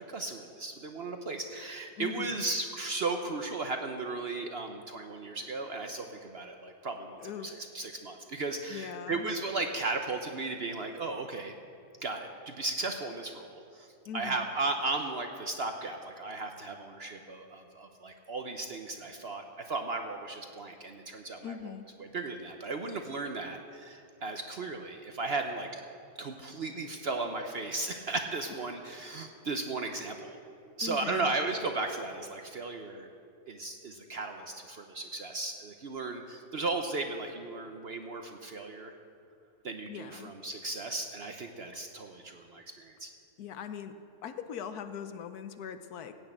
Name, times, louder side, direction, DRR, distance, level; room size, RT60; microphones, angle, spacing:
voice 1, 0.1-11.6 12.0-13.9 14.1-21.7 22.0-25.7 26.2-30.4 30.8-33.1 33.5-38.9 39.6-43.1, right 3 dB, 55° right, 5 dB, 0.8 m, -36 dB
voice 2, 2.0-2.5 7.2-7.5 8.7-9.3 14.1-14.5 21.4-21.9 30.8-31.3 39.9-40.3 43.4-43.9 44.2-46.1, left 8 dB, 75° left, 10 dB, 1.2 m, -41 dB
16.0 x 6.3 x 8.7 m, 2.6 s
omnidirectional pair, 1.7 m